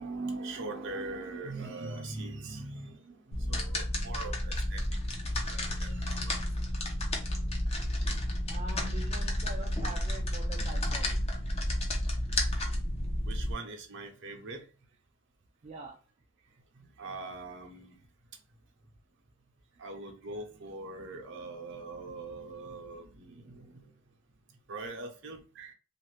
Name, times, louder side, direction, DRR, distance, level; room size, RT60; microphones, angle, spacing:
voice 1, 0.0-5.0 5.2-6.5 7.6-7.9 12.2-12.4 13.2-14.7 16.7-18.0 19.7-23.9 24.5-25.7, right 3 dB, 60° right, 0.7 m, -42 dB
sound 1, 3.3-13.5, left 1 dB, 30° left, 0.6 m, -31 dB
voice 2, 8.5-11.2 15.6-16.0, right 2 dB, 35° right, 0.4 m, -44 dB
2.7 x 2.4 x 3.1 m
head